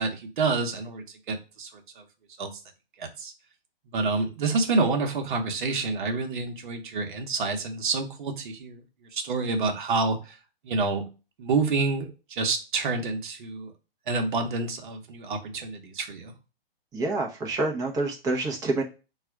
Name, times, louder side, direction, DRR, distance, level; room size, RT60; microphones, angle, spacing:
voice 1, 0.0-1.7 2.0-2.1 2.4-2.5 3.0-3.3 3.9-8.8 9.1-10.4 10.6-11.0 11.4-13.7 14.1-16.3, right 3 dB, 55° right, 5 dB, 1.1 m, -28 dB
voice 2, 16.9-18.8, right 2 dB, 10° right, 0 dB, 0.8 m, -27 dB
4.1 x 2.4 x 4.7 m, 0.31 s
hypercardioid pair, 135°, 30 cm